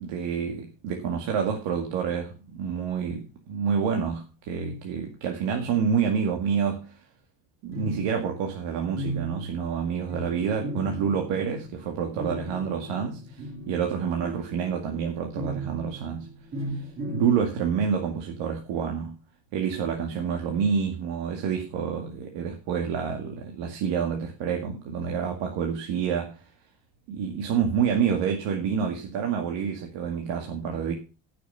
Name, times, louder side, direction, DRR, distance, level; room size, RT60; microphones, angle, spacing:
voice 1, 0.0-7.0 7.6-16.3 16.7-19.1 19.5-26.4 27.1-30.9, right 7 dB, 85° right, 2.1 m, -28 dB
sound 1, 7.7-13.8 14.2-17.2, right 1 dB, 30° right, 2.8 m, -37 dB
15.0 x 6.6 x 5.6 m
cardioid pair, 165°, 43 cm